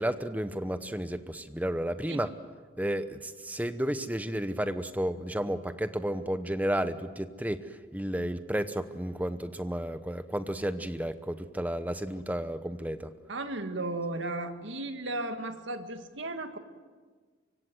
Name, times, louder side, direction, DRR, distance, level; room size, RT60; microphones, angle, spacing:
voice 1, 0.0-2.3 2.8-13.1, right 1 dB, 10° right, 11 dB, 0.9 m, -32 dB
voice 2, 13.3-16.6, right 2 dB, 85° right, 7 dB, 2.0 m, -35 dB
24.5 x 24.0 x 7.8 m, 1.5 s
head